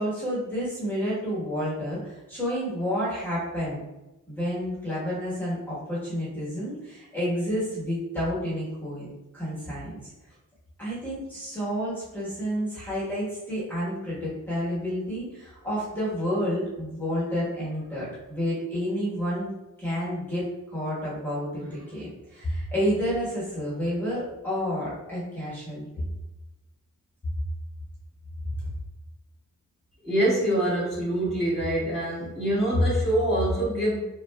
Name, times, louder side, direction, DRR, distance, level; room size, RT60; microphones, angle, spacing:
voice 1, 0.0-3.8 4.3-9.1 9.3-10.1 10.8-19.5 19.8-20.4 20.7-26.0, equal, 5° left, -10 dB, 1.1 m, -30 dB
voice 2, 30.0-34.0, right 1 dB, 20° right, -10 dB, 1.2 m, -24 dB
3.2 x 2.5 x 2.2 m, 1.0 s
wide cardioid pair, 120°, 32 cm